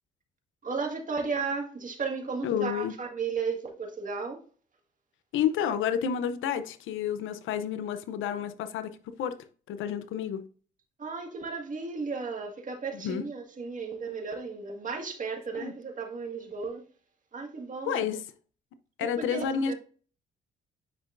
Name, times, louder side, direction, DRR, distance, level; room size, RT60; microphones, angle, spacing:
voice 1, 0.6-4.4 11.0-16.8 17.3-18.1 19.0-19.7, right 4 dB, 40° right, 1.9 m, -34 dB
voice 2, 2.4-2.9 5.3-9.4 9.7-10.4 12.9-13.2 15.6-15.7 17.9-18.2 19.0-19.7, left 8 dB, 85° left, 0.7 m, -30 dB
9.3 x 5.2 x 2.6 m
cardioid pair, 90°, 20 cm